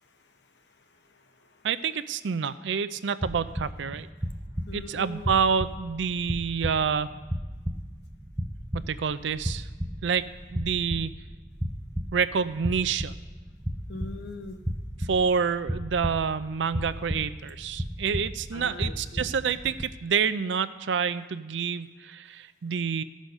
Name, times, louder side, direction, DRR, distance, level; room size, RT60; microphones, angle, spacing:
voice 1, 1.1-1.6 4.7-5.3 13.9-14.6 18.5-19.3, left 2 dB, 70° left, 6 dB, 0.9 m, -41 dB
voice 2, 1.6-4.1 4.7-7.2 8.7-9.7 10.0-11.1 12.1-13.1 15.0-23.0, right 6 dB, 85° right, 14 dB, 0.4 m, -28 dB
sound 1, 3.2-19.8, equal, 10° right, 0.5 m, -34 dB
14.5 x 6.3 x 5.3 m, 1.3 s
head